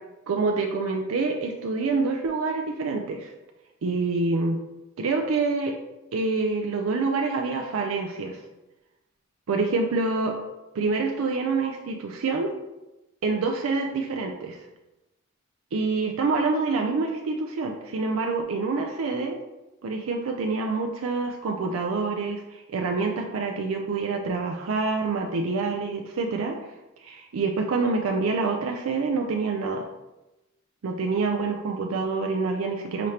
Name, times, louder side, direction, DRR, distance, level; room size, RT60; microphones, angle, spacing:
voice 1, 0.3-3.3 3.8-4.6 5.0-5.7 6.1-8.4 9.5-10.3 10.7-12.5 13.2-14.6 15.7-19.4 19.8-26.6 27.0-29.9 30.8-33.1, right 4 dB, 85° right, 2 dB, 0.4 m, -26 dB
5.1 x 3.2 x 2.8 m, 1.0 s
head